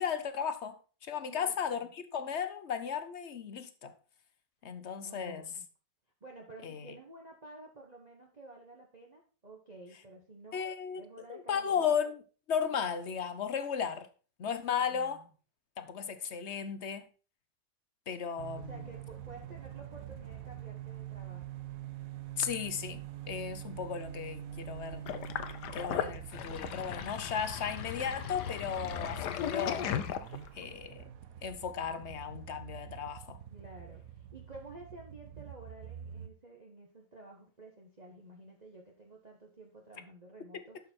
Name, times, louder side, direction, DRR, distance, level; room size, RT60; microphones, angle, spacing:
voice 1, 0.0-3.9 4.6-5.4 6.6-6.9 10.5-11.0 11.3-12.2 12.5-14.1 14.4-15.2 15.8-17.0 18.1-18.7 22.4-25.0 25.7-29.9 30.5-31.1 31.4-33.4 40.5-40.6, left 7 dB, 50° left, 1.0 m, -35 dB
voice 2, 1.2-1.9 4.6-4.7 5.0-5.7 6.2-10.7 10.9-11.8 14.8-15.3 18.6-21.6 33.5-40.8, right 2 dB, 25° right, 1.3 m, -52 dB
sound 1, 18.4-36.3, right 10 dB, 60° right, 1.1 m, -46 dB
Sink (filling or washing), 25.1-30.6, left 9 dB, 75° left, 1.4 m, -37 dB
12.0 x 5.5 x 4.4 m
omnidirectional pair, 1.9 m